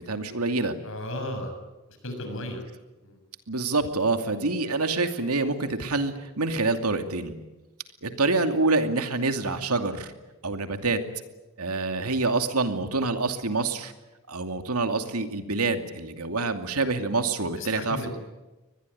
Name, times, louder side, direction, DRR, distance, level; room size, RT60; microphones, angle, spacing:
voice 1, 0.0-0.7 3.5-7.3 8.0-10.1 10.4-11.0 11.6-13.9 14.3-18.2, right 3 dB, 90° right, 7 dB, 2.6 m, -26 dB
voice 2, 0.8-1.6 2.0-2.6 3.0-3.2 17.6-18.2, left 1 dB, 60° left, 5 dB, 6.8 m, -34 dB
24.0 x 20.5 x 9.9 m, 1.1 s
head